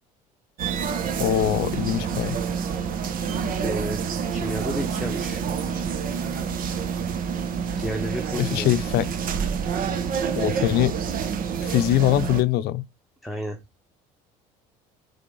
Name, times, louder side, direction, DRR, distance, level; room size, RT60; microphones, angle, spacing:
sound 1, 0.6-12.4, right 6 dB, 55° right, 1.2 m, -28 dB
voice 1, 1.2-2.4 8.4-9.1 10.4-11.0 11.6-12.8, left 13 dB, 65° left, 0.6 m, -22 dB
voice 2, 3.6-5.4 7.8-8.8 13.2-13.6, equal, ahead, 1.2 m, -32 dB
7.7 x 3.5 x 3.9 m
supercardioid pair, 95°, 17 cm